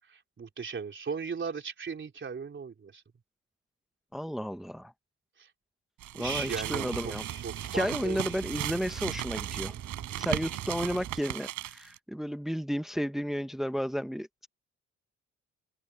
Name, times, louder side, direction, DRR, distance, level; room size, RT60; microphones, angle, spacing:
voice 1, 0.1-3.0 5.4-5.5 6.1-8.4, right 5 dB, 40° right, 3.6 m, -37 dB
voice 2, 4.1-4.9 6.1-7.2 7.7-9.7 10.2-14.5, equal, ahead, 1.1 m, -32 dB
sound 1, 6.0-12.0, right 14 dB, 85° right, 6.0 m, -37 dB
sound 2, 6.2-11.2, right 10 dB, 65° right, 2.8 m, -42 dB
open air
cardioid pair, 90°, 30 cm